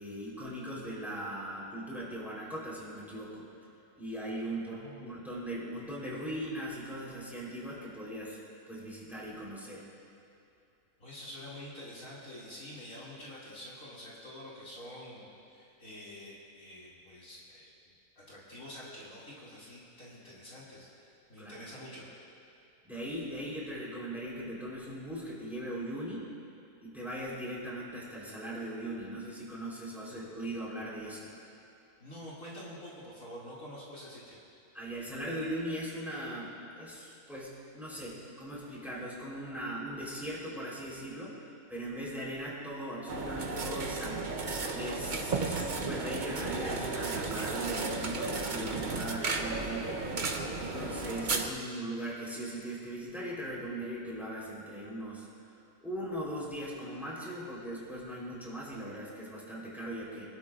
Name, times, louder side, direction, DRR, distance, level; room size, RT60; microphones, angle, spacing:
voice 1, 0.0-3.4 4.0-8.4 8.7-9.8 21.4-21.7 22.8-26.3 26.8-31.3 34.7-41.4 41.7-44.3 44.7-50.1 50.5-55.3 55.8-60.2, right 1 dB, ahead, -6 dB, 3.6 m, -39 dB
voice 2, 4.7-5.2 11.0-17.7 18.2-22.1 32.0-34.4, left 1 dB, 60° left, -7 dB, 2.8 m, -47 dB
sound 1, 43.1-51.5, right 3 dB, 40° right, 0.8 m, -34 dB
25.0 x 12.0 x 2.5 m, 2.6 s
omnidirectional pair, 1.6 m